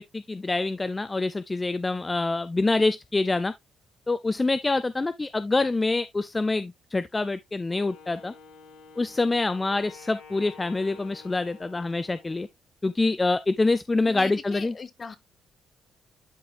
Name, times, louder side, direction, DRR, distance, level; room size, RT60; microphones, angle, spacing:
voice 1, 0.0-3.5 4.1-8.3 9.0-12.5 12.8-14.7, left 3 dB, 20° left, 0.4 m, -26 dB
Wind instrument woodwind instrument, 7.6-12.5, left 5 dB, 85° left, 2.9 m, -49 dB
voice 2, 14.0-15.2, left 5 dB, 35° left, 1.0 m, -39 dB
12.0 x 4.2 x 2.2 m
cardioid pair, 90°, 0 cm